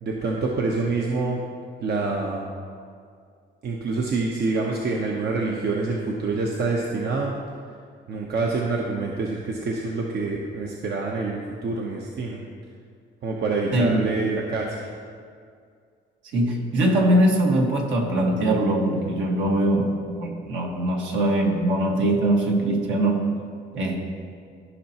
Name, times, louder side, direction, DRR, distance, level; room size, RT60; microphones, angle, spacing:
voice 1, 0.0-1.4 1.8-2.5 3.6-7.3 8.1-12.4 13.2-14.9, right 3 dB, 55° right, -1 dB, 0.9 m, -26 dB
voice 2, 13.7-14.0 16.3-23.3 23.7-24.0, right 1 dB, 70° right, 0 dB, 1.6 m, -22 dB
14.5 x 5.5 x 2.9 m, 2.2 s
cardioid pair, 90°, 20 cm